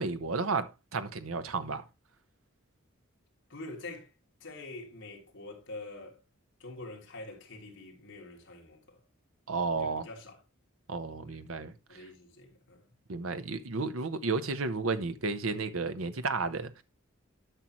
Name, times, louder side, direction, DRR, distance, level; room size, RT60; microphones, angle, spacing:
voice 1, 0.0-1.9 9.5-10.1 10.9-11.7 13.1-16.8, right 4 dB, 85° right, 0.9 m, -32 dB
voice 2, 3.5-4.1 4.4-6.2 6.6-9.0 9.8-10.4 11.3-11.4 11.9-12.9, left 2 dB, 60° left, 2.9 m, -45 dB
11.5 x 6.1 x 3.1 m
head